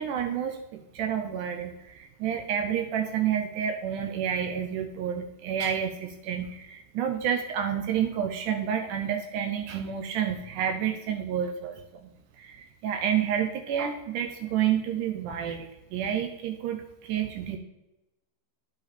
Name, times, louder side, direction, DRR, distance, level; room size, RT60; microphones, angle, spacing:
voice 1, 0.0-12.1 12.4-17.6, right 9 dB, 85° right, 5 dB, 2.3 m, -29 dB
9.8 x 7.8 x 4.2 m, 0.93 s
omnidirectional pair, 3.6 m